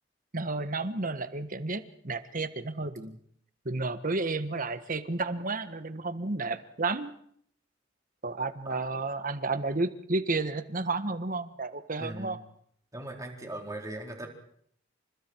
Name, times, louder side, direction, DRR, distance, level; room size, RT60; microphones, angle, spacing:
voice 1, 0.3-3.2 3.6-7.1 8.2-12.4, right 3 dB, 45° right, 11 dB, 1.5 m, -32 dB
voice 2, 8.6-9.0 12.0-12.4 12.9-14.3, right 1 dB, 15° right, 1 dB, 4.3 m, -40 dB
29.0 x 26.5 x 4.7 m, 0.66 s
head